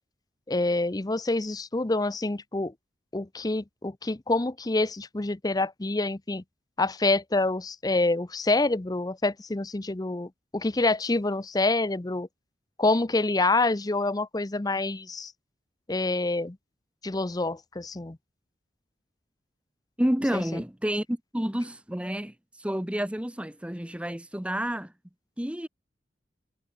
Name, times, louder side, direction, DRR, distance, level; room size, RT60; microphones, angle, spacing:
voice 1, 0.5-2.7 3.1-6.4 6.8-12.3 12.8-15.3 15.9-16.6 17.0-18.2 20.3-20.6, left 2 dB, 20° left, 0.6 m, -27 dB
voice 2, 20.0-22.3 22.6-24.9 25.4-25.7, equal, 5° right, 0.9 m, -29 dB
head